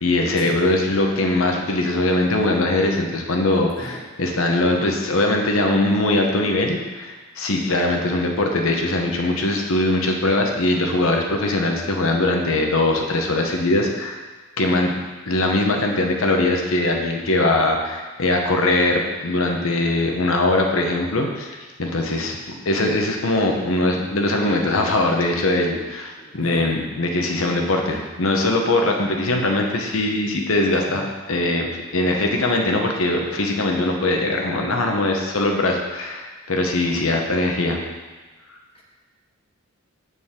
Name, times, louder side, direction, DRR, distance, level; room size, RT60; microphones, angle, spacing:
voice 1, 0.0-14.2 14.6-14.9 15.3-37.8, left 2 dB, 75° left, 2 dB, 1.0 m, -21 dB
voice 2, 3.8-4.1 26.2-26.7 27.8-28.1 30.9-31.1 38.7-38.8, right 1 dB, 25° left, -2 dB, 1.3 m, -37 dB
6.8 x 6.7 x 3.7 m, 1.3 s
head